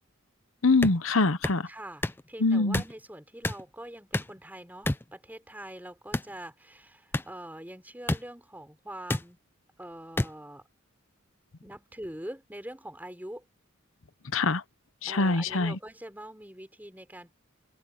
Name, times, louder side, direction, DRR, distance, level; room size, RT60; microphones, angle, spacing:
voice 1, 0.6-1.7 2.4-2.8 14.3-14.6 15.0-15.8, left 3 dB, 75° left, 1.0 m, -24 dB
sound 1, 0.8-1.0 1.4-1.6 2.0-2.2 2.7-2.9 3.4-3.6 4.1-4.4 4.9-5.0 6.1-6.3 7.1-7.3 8.1-8.2 9.1-9.2 10.2-10.3, left 1 dB, 10° left, 0.4 m, -28 dB
voice 2, 1.7-9.4 9.8-10.7 11.6-13.5 15.0-17.3, right 1 dB, 10° right, 5.0 m, -44 dB
open air
head